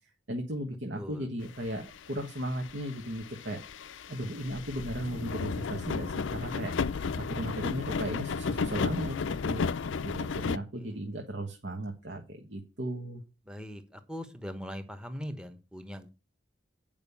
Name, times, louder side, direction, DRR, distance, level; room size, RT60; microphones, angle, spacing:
voice 1, 0.3-3.6 4.1-9.6 10.0-13.2, right 1 dB, 65° right, 3 dB, 1.4 m, -36 dB
voice 2, 0.9-1.3 10.5-11.0 13.5-16.1, equal, 5° right, 8 dB, 1.1 m, -41 dB
sound 1, 1.4-10.6, left 5 dB, 90° left, 0.5 m, -34 dB
9.1 x 5.2 x 6.9 m, 0.30 s
head